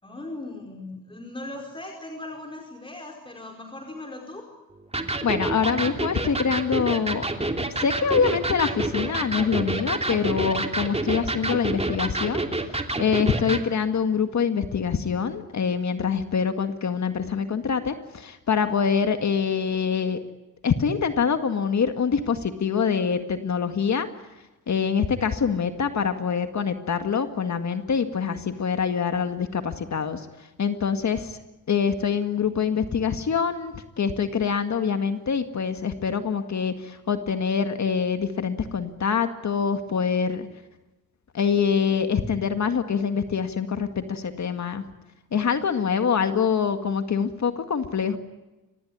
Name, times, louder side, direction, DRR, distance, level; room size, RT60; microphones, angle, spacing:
voice 1, 0.0-4.5, left 2 dB, 15° left, 1 dB, 4.8 m, -38 dB
Electric guitar, 4.9-13.7, right 2 dB, 15° right, 2.9 m, -28 dB
voice 2, 5.2-7.2 7.8-20.2 20.6-24.1 24.7-31.4 31.7-40.5 41.3-44.8 45.3-48.2, left 6 dB, 50° left, 7 dB, 2.0 m, -25 dB
25.0 x 20.0 x 9.6 m, 1.1 s
cardioid pair, 75°, 36 cm